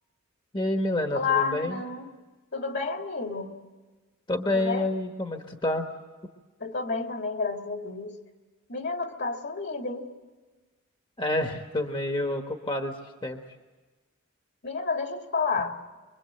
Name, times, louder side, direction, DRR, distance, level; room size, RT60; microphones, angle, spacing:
voice 1, 0.5-1.8 4.3-5.9 11.2-12.9 13.2-13.4, left 1 dB, 25° left, 4 dB, 1.4 m, -28 dB
voice 2, 1.1-2.1 2.5-3.6 4.5-4.9 6.6-8.2 8.7-10.1 14.6-15.8, left 4 dB, 55° left, 3 dB, 2.3 m, -30 dB
25.0 x 24.0 x 7.9 m, 1.3 s
head